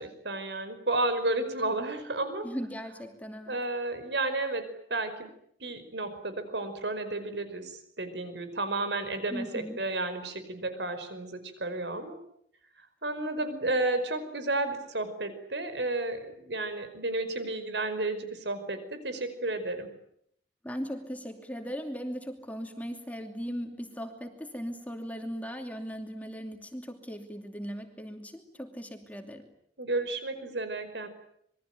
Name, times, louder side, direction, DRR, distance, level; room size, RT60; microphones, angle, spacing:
voice 1, 0.0-2.5 3.5-5.3 5.6-12.2 13.0-19.9 29.8-31.1, right 2 dB, 75° right, 10 dB, 5.2 m, -32 dB
voice 2, 2.4-3.6 9.3-9.8 20.6-29.5, equal, 10° left, 4 dB, 2.6 m, -38 dB
27.0 x 22.5 x 9.1 m, 0.71 s
head